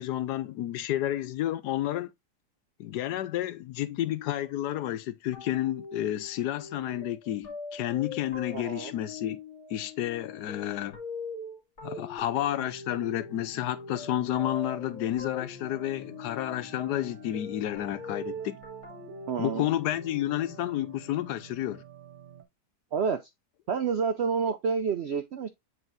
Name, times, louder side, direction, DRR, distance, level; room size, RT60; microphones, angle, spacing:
voice 1, 0.0-2.1 2.8-9.4 9.7-11.0 11.8-18.6 19.4-21.8, left 13 dB, 80° left, 1.2 m, -31 dB
sound 1, 5.3-20.7, left 3 dB, 40° left, 2.4 m, -42 dB
voice 2, 8.5-8.9 19.3-19.7 22.9-23.3 23.7-25.5, right 6 dB, 70° right, 0.6 m, -29 dB
sound 2, 12.5-22.4, right 7 dB, 55° right, 1.3 m, -50 dB
8.9 x 4.6 x 2.5 m
omnidirectional pair, 1.8 m